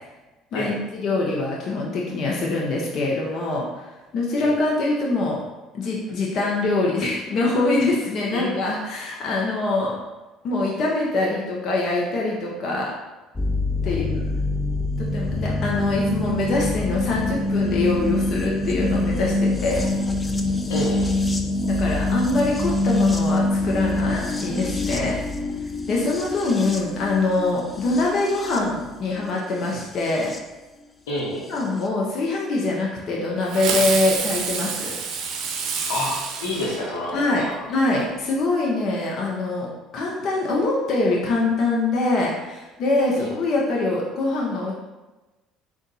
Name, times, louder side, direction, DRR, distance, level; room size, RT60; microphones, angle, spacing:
voice 1, 0.5-5.4 5.7-10.0 10.4-12.9 13.8-14.2 15.0-19.8 21.7-25.2 25.9-30.3 31.5-34.9 37.1-39.7 39.9-44.7, left 2 dB, 55° left, -3 dB, 0.8 m, -24 dB
voice 2, 8.3-8.6 20.7-21.1 31.1-31.6 35.9-36.1 36.4-37.6 43.2-43.3, left 2 dB, 85° left, -4 dB, 1.1 m, -28 dB
sound 1, 13.4-30.4 31.6-31.7, left 2 dB, 20° left, 0.5 m, -25 dB
Fireworks, 33.5-37.4, right 6 dB, 65° right, 0.5 m, -28 dB
3.9 x 2.5 x 4.0 m, 1.1 s
hypercardioid pair, 75°, 0 cm